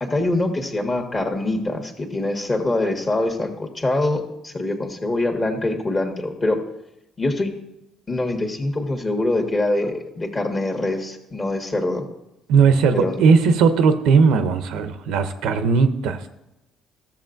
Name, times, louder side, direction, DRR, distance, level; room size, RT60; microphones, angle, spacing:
voice 1, 0.0-6.6 7.2-7.5 8.1-12.0 12.9-13.2, left 2 dB, 30° left, 3 dB, 1.5 m, -24 dB
voice 2, 12.5-16.2, right 5 dB, 80° right, 9 dB, 0.6 m, -17 dB
13.0 x 6.9 x 2.6 m, 0.89 s
supercardioid pair, 75°, 0 cm